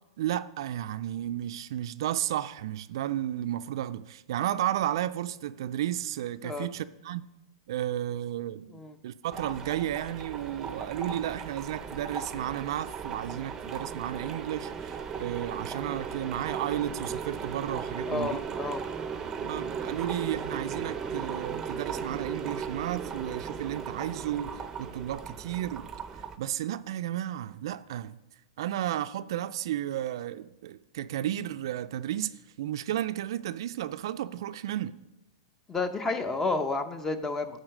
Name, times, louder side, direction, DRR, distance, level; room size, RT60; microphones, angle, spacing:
voice 1, 0.2-7.2 7.7-18.4 19.4-25.9 26.4-28.2 28.6-35.0, right 12 dB, 65° right, 0.3 m, -33 dB
sound 1, 9.3-26.4, right 6 dB, 20° right, 0.6 m, -37 dB
voice 2, 18.1-18.8 35.7-37.6, left 3 dB, 15° left, 0.7 m, -31 dB
9.8 x 3.9 x 6.4 m
hypercardioid pair, 120°, 3 cm